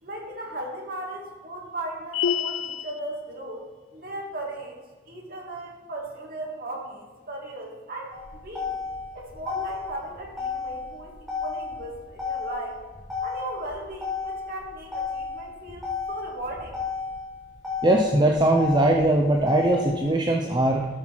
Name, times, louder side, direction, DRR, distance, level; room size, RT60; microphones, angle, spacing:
voice 1, 0.0-3.6 3.9-4.8 5.1-8.7 9.1-11.1 11.4-12.8 13.2-16.8, right 1 dB, 45° right, -1 dB, 2.0 m, -37 dB
sound 1, 2.1-3.0, left 8 dB, 70° left, 0.4 m, -27 dB
Motor vehicle (road), 8.1-20.1, left 5 dB, ahead, 2.3 m, -33 dB
voice 2, 17.8-20.9, right 1 dB, 20° right, 1 dB, 0.6 m, -20 dB
13.0 x 5.7 x 4.5 m, 1.4 s
head